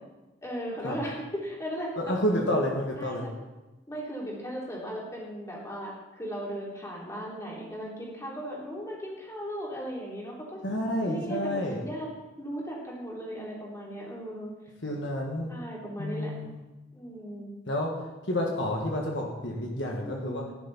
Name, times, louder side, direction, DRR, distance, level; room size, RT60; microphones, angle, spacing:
voice 1, 0.4-2.2 3.0-3.3 3.9-10.6 11.1-12.1 12.4-14.5 15.5-16.3 16.9-17.5 20.0-20.5, equal, 15° left, -4 dB, 3.4 m, -37 dB
voice 2, 2.0-3.2 10.6-11.8 14.8-15.5 16.0-16.6 17.7-17.9 18.3-20.4, left 1 dB, 65° left, 0 dB, 1.8 m, -29 dB
16.0 x 10.5 x 4.3 m, 1.1 s
head